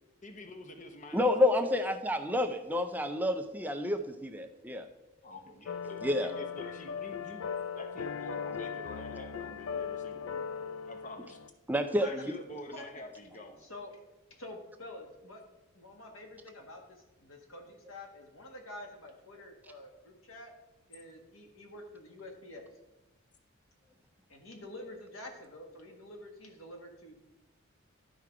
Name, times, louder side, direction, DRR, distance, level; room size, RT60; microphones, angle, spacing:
voice 1, 0.2-1.8 5.2-7.5 7.7-11.5 12.0-13.6, left 1 dB, 35° left, 5 dB, 0.8 m, -47 dB
voice 2, 1.1-4.9 6.0-6.3 11.7-12.3 19.6-19.7, left 1 dB, 10° right, 7 dB, 0.4 m, -29 dB
sound 1, 5.7-11.5, left 6 dB, 65° left, 0.4 m, -38 dB
voice 3, 12.7-13.0 13.6-13.9 14.4-20.5 20.9-22.6 24.3-27.1, left 1 dB, 85° left, 2 dB, 1.7 m, -48 dB
12.0 x 4.7 x 4.7 m, 1.0 s
head